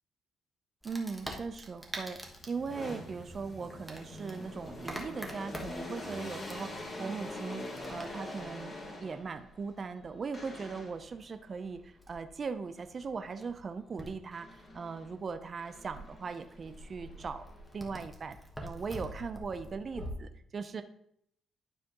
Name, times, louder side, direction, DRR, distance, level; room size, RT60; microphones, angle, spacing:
Wood, 0.8-20.1, equal, ahead, 1.4 m, -48 dB
voice 1, 0.8-2.2 2.5-8.7 9.0-17.4 17.7-20.8, right 5 dB, 40° right, 9 dB, 0.7 m, -39 dB
sound 1, 1.8-9.4 10.3-11.1 14.3-15.1 15.6-18.0, left 1 dB, 30° left, 3.4 m, -45 dB
12.0 x 4.9 x 3.0 m, 0.70 s
cardioid pair, 90°, 0 cm